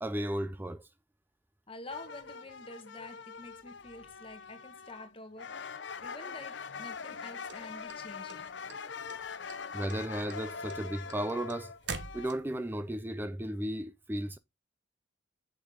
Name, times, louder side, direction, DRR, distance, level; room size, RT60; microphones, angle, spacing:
voice 1, 0.0-0.9 9.7-11.7 12.1-14.4, right 1 dB, 10° right, 0.4 m, -34 dB
voice 2, 1.7-5.6 6.0-8.4, left 2 dB, 30° left, 1.5 m, -48 dB
sound 1, 1.9-5.1 5.4-12.3, left 5 dB, 65° left, 0.7 m, -43 dB
sound 2, 7.5-8.8 9.1-9.6 9.9-12.7, right 4 dB, 65° right, 1.2 m, -42 dB
8.1 x 7.0 x 3.6 m
head